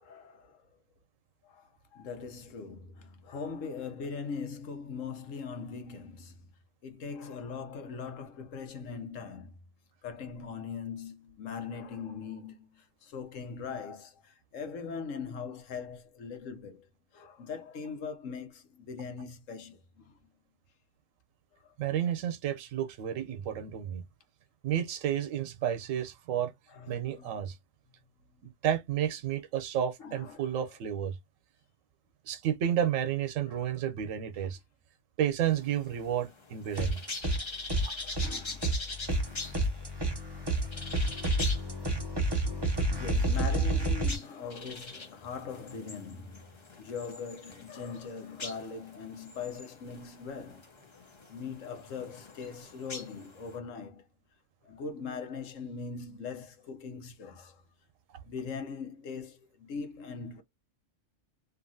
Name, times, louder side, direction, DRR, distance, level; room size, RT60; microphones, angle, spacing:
voice 1, 0.0-0.6 1.4-6.5 6.8-9.5 10.0-16.9 17.1-20.1 21.6-21.7 26.7-27.4 30.0-30.6 33.5-33.8 37.9-38.7 42.9-50.6 51.3-54.0 54.6-57.6 58.2-60.4, left 5 dB, 80° left, 1.2 m, -41 dB
voice 2, 21.8-24.0 24.6-26.5 26.9-27.6 28.4-31.1 32.3-34.6 35.2-37.0, right 10 dB, 85° right, 1.0 m, -31 dB
sound 1, 35.4-53.6, left 3 dB, 25° left, 0.7 m, -44 dB
sound 2, 36.8-37.4 37.7-44.2, right 1 dB, 25° right, 0.7 m, -30 dB
2.8 x 2.5 x 2.6 m
omnidirectional pair, 1.3 m